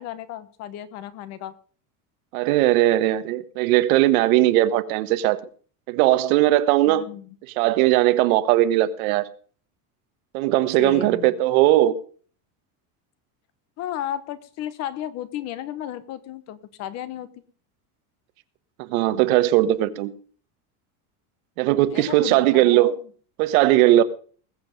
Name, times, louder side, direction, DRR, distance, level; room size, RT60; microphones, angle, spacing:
voice 1, 0.0-1.5 6.8-7.4 10.8-11.4 13.8-17.3 21.9-23.0, left 11 dB, 35° left, 1.1 m, -34 dB
voice 2, 2.3-5.4 5.9-7.1 7.6-9.3 10.3-12.0 18.9-20.1 21.6-22.9 23.4-24.0, right 15 dB, 75° right, 1.4 m, -19 dB
20.5 x 7.8 x 5.2 m
cardioid pair, 175°, 43 cm